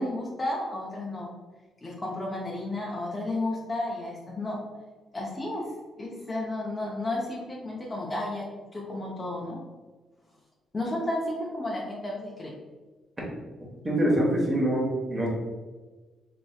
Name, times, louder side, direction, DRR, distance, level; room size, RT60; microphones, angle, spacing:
voice 1, 0.0-1.3 1.8-4.6 5.1-5.6 6.0-8.4 8.7-9.6 10.7-12.5, left 1 dB, 25° left, -3 dB, 0.6 m, -32 dB
voice 2, 13.8-15.3, right 1 dB, 25° right, -3 dB, 1.0 m, -24 dB
3.0 x 2.7 x 2.3 m, 1.3 s
cardioid pair, 90°, 0 cm